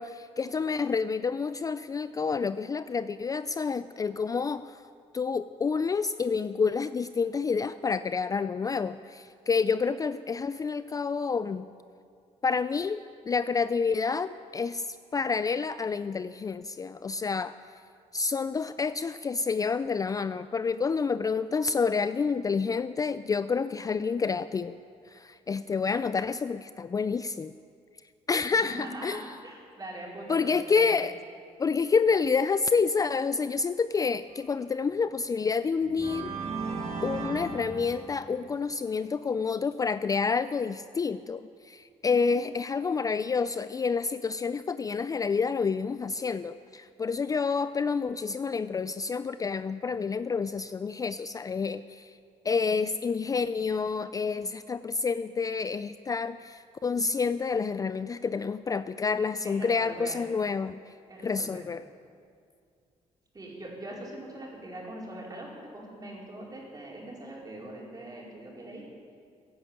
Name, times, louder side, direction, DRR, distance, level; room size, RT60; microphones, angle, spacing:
voice 1, 0.0-4.8 5.1-11.7 12.4-17.6 18.1-24.7 25.1-27.5 28.3-29.2 30.3-31.1 31.6-36.3 37.0-52.2 52.4-60.9 61.2-61.8, left 5 dB, 30° left, 13 dB, 0.4 m, -29 dB
voice 2, 28.5-30.9 59.4-60.2 61.1-61.6 63.3-68.8, right 1 dB, 30° right, -3 dB, 4.7 m, -42 dB
sound 1, 34.9-35.1 35.8-38.6, right 4 dB, 55° right, 2.5 m, -36 dB
15.0 x 10.0 x 8.8 m, 2.3 s
cardioid pair, 90°, 13 cm